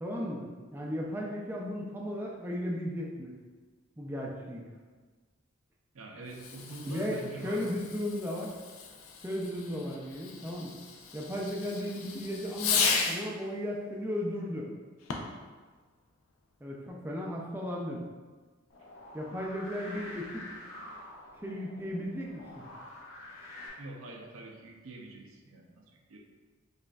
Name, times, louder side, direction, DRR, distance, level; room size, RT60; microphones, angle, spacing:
voice 1, 0.0-3.3 4.0-4.7 6.9-8.5 9.2-10.7 11.1-14.7 16.6-18.0 19.1-20.5 21.4-22.6, equal, 10° right, -2 dB, 0.4 m, -35 dB
voice 2, 5.9-7.7 23.8-26.2, right 2 dB, 85° right, 1 dB, 0.6 m, -45 dB
Fireworks, 6.3-13.4 15.0-15.5, left 5 dB, 90° left, 0.4 m, -35 dB
sound 1, 18.7-23.7, left 1 dB, 70° left, 0.8 m, -47 dB
5.0 x 2.5 x 2.3 m, 1.4 s
head